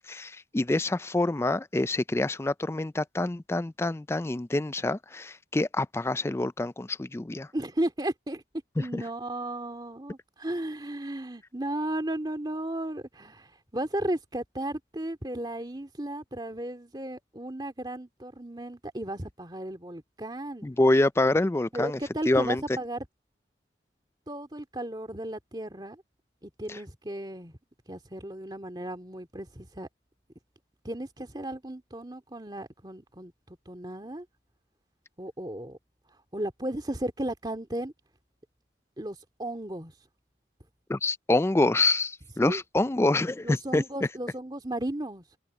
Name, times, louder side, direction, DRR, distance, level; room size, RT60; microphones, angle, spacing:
voice 1, 0.0-7.5 8.9-9.0 20.6-22.0 22.3-22.6 26.7-26.8 40.9-43.8, left 2 dB, 15° left, 0.3 m, -26 dB
voice 2, 7.5-8.4 8.8-20.7 21.7-23.1 24.3-26.0 26.4-27.6 27.9-29.9 30.8-34.3 35.2-35.8 36.3-37.9 39.0-39.9 42.4-42.6 43.4-45.2, right 1 dB, 20° right, 2.2 m, -35 dB
head